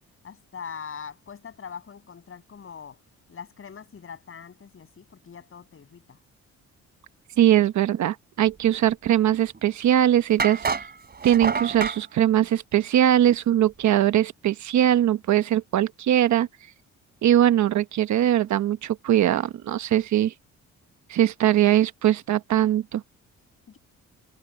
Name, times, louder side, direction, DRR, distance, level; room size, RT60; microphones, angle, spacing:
voice 1, 0.2-3.0 3.3-6.2 23.7-23.8, left 7 dB, 45° left, 7.8 m, -42 dB
voice 2, 7.4-10.6 11.2-16.5 17.2-20.3 21.1-23.0, right 11 dB, 70° right, 1.2 m, -21 dB
sound 1, 9.5-9.6 10.4-12.0, right 5 dB, 35° right, 3.3 m, -28 dB
cardioid pair, 90°, 30 cm